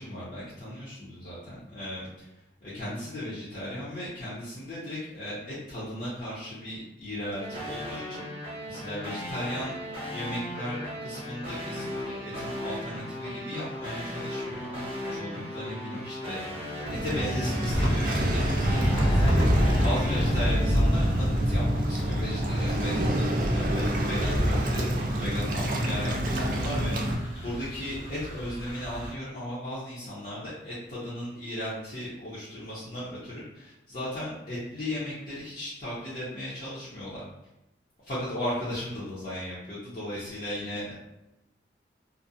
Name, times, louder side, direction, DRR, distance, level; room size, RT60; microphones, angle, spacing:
voice 1, 0.0-2.3 2.6-8.2 8.7-9.8 10.1-16.4 16.8-24.8 25.2-37.2 38.0-40.9, left 1 dB, 45° left, -10 dB, 0.6 m, -36 dB
sound 1, 7.4-20.7, equal, 30° right, 0.8 m, -37 dB
Waves surf, 16.9-27.1, right 1 dB, 50° right, 0.3 m, -29 dB
sound 2, 17.6-29.1, equal, 70° left, 0.9 m, -28 dB
2.4 x 2.0 x 2.6 m, 0.91 s
head